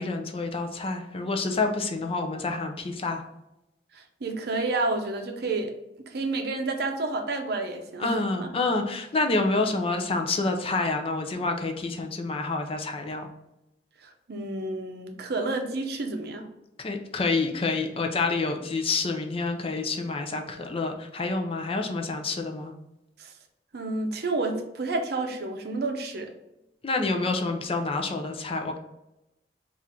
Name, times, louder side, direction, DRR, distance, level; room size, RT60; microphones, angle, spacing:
voice 1, 0.0-3.2 8.0-13.3 16.8-22.7 26.8-28.8, left 3 dB, 35° left, 4 dB, 0.5 m, -28 dB
voice 2, 3.9-5.7 6.1-8.5 14.0-16.5 23.2-23.3 23.7-26.3, right 2 dB, 65° right, 4 dB, 0.6 m, -30 dB
3.6 x 2.5 x 4.2 m, 0.91 s
head